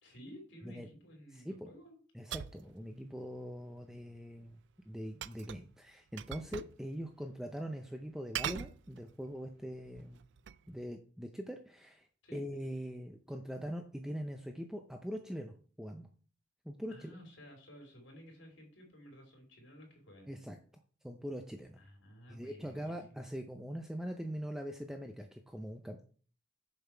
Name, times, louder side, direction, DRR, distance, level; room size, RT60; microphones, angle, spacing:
voice 1, 0.0-2.0 12.2-12.4 16.9-20.3 21.8-23.2, equal, 75° left, 2 dB, 3.2 m, -54 dB
voice 2, 1.3-1.7 2.1-4.6 4.9-10.2 10.7-12.1 12.3-16.1 16.7-17.2 20.3-20.6 21.0-21.8 22.3-26.0, equal, 5° right, 4 dB, 0.5 m, -42 dB
sound 1, 2.3-2.7 5.2-5.7 6.2-6.8 7.1-7.2 8.3-9.3 9.9-10.7, right 10 dB, 65° right, 0.3 m, -41 dB
7.1 x 5.7 x 4.5 m, 0.42 s
head